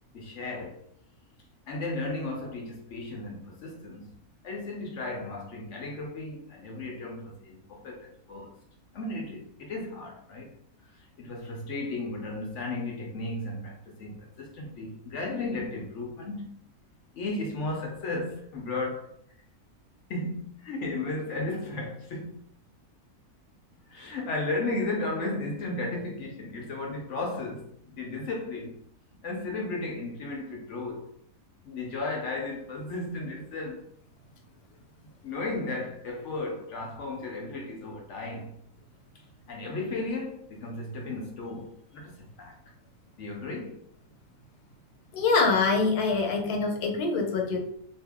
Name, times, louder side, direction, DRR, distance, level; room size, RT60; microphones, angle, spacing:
voice 1, 0.1-0.8 1.7-4.1 4.4-8.5 8.9-10.5 10.8-16.6 17.1-19.1 20.1-22.4 23.9-28.8 29.2-31.1 31.6-33.8 35.2-38.6 39.5-42.6 43.2-43.8, left 2 dB, 65° left, 0.8 m, -35 dB
voice 2, 45.1-47.6, left 4 dB, 80° left, 1.3 m, -24 dB
2.7 x 2.7 x 3.4 m
omnidirectional pair, 1.6 m